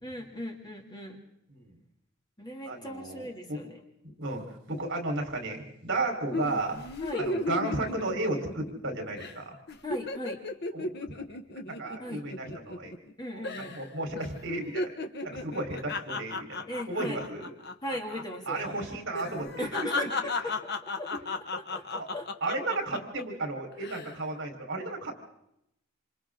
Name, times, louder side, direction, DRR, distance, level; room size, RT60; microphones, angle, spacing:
voice 1, 0.0-1.2 2.4-3.8 7.0-7.3 9.8-10.4 12.0-12.2 13.2-13.7 16.7-17.2 17.8-18.6 19.6-22.3, left 1 dB, 20° left, 1 dB, 2.6 m, -38 dB
voice 2, 2.7-3.6 4.0-6.8 7.2-9.6 10.7-10.9 11.7-12.9 13.3-14.9 15.2-17.5 18.5-19.7 22.4-25.1, right 2 dB, 60° right, 2 dB, 4.3 m, -34 dB
sound 1, 6.3-8.9 9.2-9.4 9.7-13.1 13.4-13.9 14.2-18.2 18.5-18.7 19.1-23.2 23.7-24.1, left 2 dB, 55° left, 1.2 m, -35 dB
27.5 x 27.5 x 3.8 m, 0.80 s
head